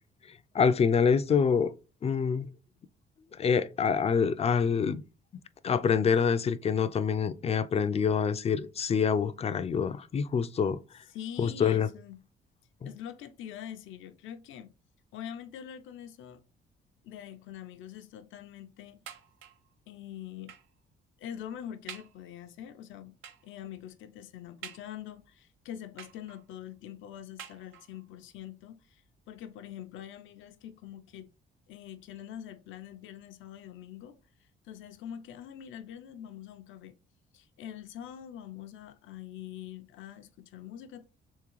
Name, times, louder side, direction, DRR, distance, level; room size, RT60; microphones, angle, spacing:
voice 1, 0.5-1.7 2.0-2.5 3.4-5.0 5.6-10.8 11.4-11.9 12.8-12.9, left 6 dB, 30° left, 0.4 m, -26 dB
voice 2, 11.1-12.2 12.8-14.7 15.1-16.4 17.0-19.0 19.9-20.6 21.2-23.1 23.4-29.0 29.3-31.3 31.7-34.2 34.6-36.9 37.3-41.0, left 10 dB, 80° left, 0.6 m, -44 dB
sound 1, 19.1-19.7 20.5-20.8 21.3-21.4 21.9-22.3 23.2-23.6 24.6-25.3 26.0-26.6 27.4-28.1 28.9-29.0 29.3-29.4, right 8 dB, 85° right, 0.6 m, -48 dB
3.6 x 3.2 x 3.1 m
cardioid pair, 90°, 20 cm